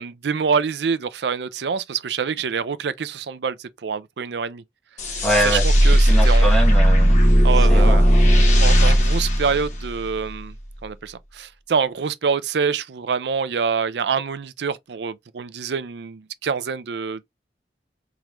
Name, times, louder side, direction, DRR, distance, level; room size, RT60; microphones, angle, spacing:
voice 1, 0.0-4.6 5.4-6.5 7.4-8.1 8.6-10.5 10.8-17.2, right 6 dB, 75° right, 0.5 m, -26 dB
sound 1, 5.0-10.3, equal, 40° left, 1.3 m, -16 dB
voice 2, 5.2-7.2 7.6-8.1, right 1 dB, ahead, 1.2 m, -24 dB
3.6 x 3.1 x 3.0 m
head